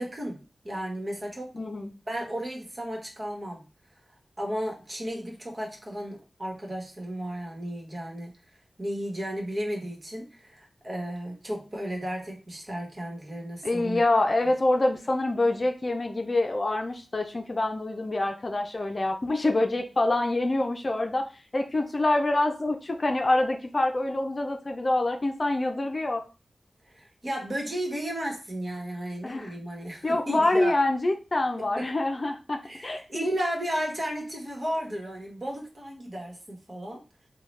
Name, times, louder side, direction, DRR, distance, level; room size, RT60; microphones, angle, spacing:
voice 1, 0.0-1.6 2.1-3.6 4.4-8.4 8.8-14.0 26.8-30.7 31.6-31.9 32.6-37.0, equal, 45° right, 0 dB, 1.3 m, -34 dB
voice 2, 1.5-1.9 13.6-21.3 21.5-26.2 29.2-29.5 30.0-33.3, left 2 dB, 45° left, 4 dB, 0.6 m, -26 dB
3.8 x 2.3 x 3.2 m, 0.33 s
cardioid pair, 50°, 0 cm